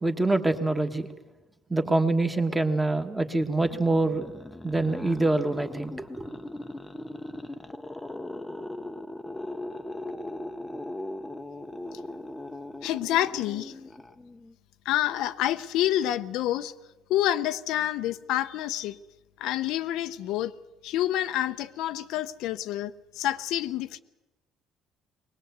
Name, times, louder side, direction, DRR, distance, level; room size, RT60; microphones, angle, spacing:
voice 1, 0.0-1.1 1.7-4.3 4.6-6.3, right 2 dB, 10° right, 6 dB, 1.3 m, -25 dB
sound 1, 3.4-14.5, left 1 dB, 10° left, 0.7 m, -39 dB
voice 2, 12.8-13.7 14.8-16.7 17.1-19.0 19.4-20.5 20.8-24.0, left 13 dB, 70° left, 11 dB, 0.7 m, -28 dB
21.5 x 19.0 x 8.1 m, 1.1 s
cardioid pair, 155°, 0 cm